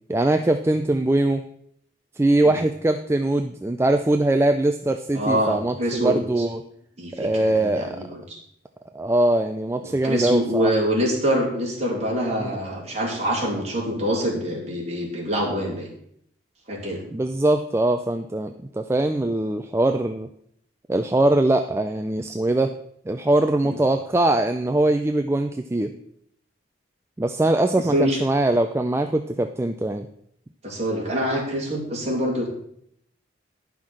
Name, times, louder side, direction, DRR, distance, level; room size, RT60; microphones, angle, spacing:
voice 1, 0.1-1.4 2.2-6.6 7.1-8.0 8.9-10.7 12.4-12.6 17.1-20.3 20.9-22.8 23.1-25.9 27.2-30.1, right 2 dB, 15° right, 7 dB, 0.4 m, -22 dB
voice 2, 5.1-6.4 7.0-8.4 9.8-15.9 16.7-17.0 23.6-23.8 27.9-28.2 30.6-32.5, equal, 35° right, -2 dB, 2.9 m, -25 dB
10.5 x 5.8 x 6.2 m, 0.70 s
head